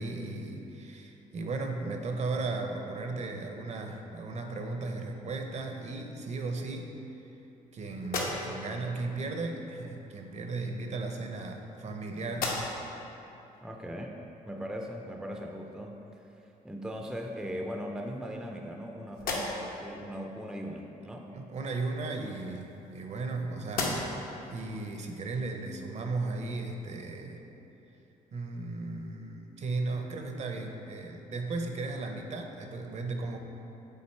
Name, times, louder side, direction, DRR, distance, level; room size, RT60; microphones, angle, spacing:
voice 1, 0.0-6.9 7.7-12.6 21.3-27.4 28.3-33.4, right 3 dB, 50° right, 4 dB, 0.6 m, -36 dB
sound 1, 8.0-8.8 10.0-10.1 11.1-11.9 12.3-13.0 13.5-13.6 16.3-16.4 16.8-17.5 18.1-18.8 19.1-19.9 21.9-23.3 23.7-24.3, left 2 dB, 70° left, 1.0 m, -37 dB
voice 2, 13.6-14.2 14.4-16.2 16.6-21.3, equal, 5° right, 2 dB, 0.4 m, -39 dB
7.3 x 3.8 x 4.4 m, 3.0 s
cardioid pair, 100°, 15 cm